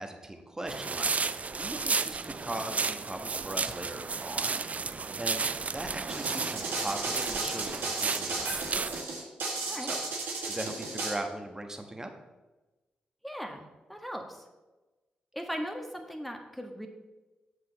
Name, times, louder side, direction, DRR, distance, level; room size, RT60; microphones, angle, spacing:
voice 1, 0.0-4.7 5.2-8.9 9.5-10.0 10.4-12.1, right 1 dB, 15° right, 4 dB, 1.3 m, -39 dB
sound 1, 0.7-9.0, right 4 dB, 40° right, 0.4 m, -33 dB
sound 2, 6.1-11.1, right 3 dB, 75° right, 1.8 m, -34 dB
voice 2, 13.2-13.6 13.9-14.4 15.3-16.9, equal, ahead, 3 dB, 1.5 m, -38 dB
7.5 x 6.4 x 4.1 m, 1.1 s
hypercardioid pair, 40°, 4 cm